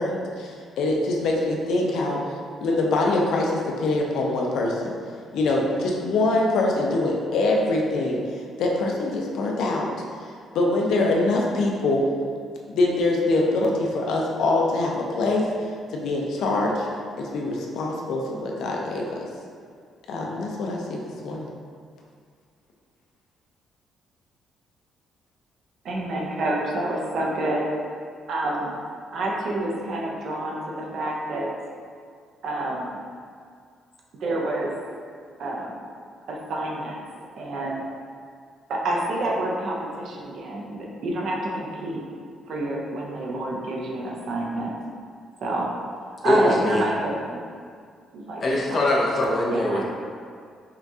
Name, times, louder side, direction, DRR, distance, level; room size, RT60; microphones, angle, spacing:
voice 1, 0.0-2.2 2.6-4.9 5.3-8.2 8.6-9.9 10.2-10.3 10.5-12.0 12.7-15.5 15.9-16.9 17.2-19.2 20.1-21.5, left 2 dB, 75° left, -1 dB, 0.6 m, -24 dB
voice 2, 25.8-27.7 28.3-28.7 29.1-31.5 32.4-33.0 34.2-34.8 35.4-35.7 36.3-37.0 37.4-37.9 38.7-42.0 42.5-44.7 45.4-45.7 46.1-47.4 48.1-48.4 48.7-48.8 49.5-49.8, right 1 dB, 55° right, -2 dB, 0.6 m, -28 dB
voice 3, 46.2-46.9 48.4-49.8, left 1 dB, 35° left, -4 dB, 0.7 m, -22 dB
5.6 x 2.3 x 2.7 m, 2.1 s
cardioid pair, 155°, 0 cm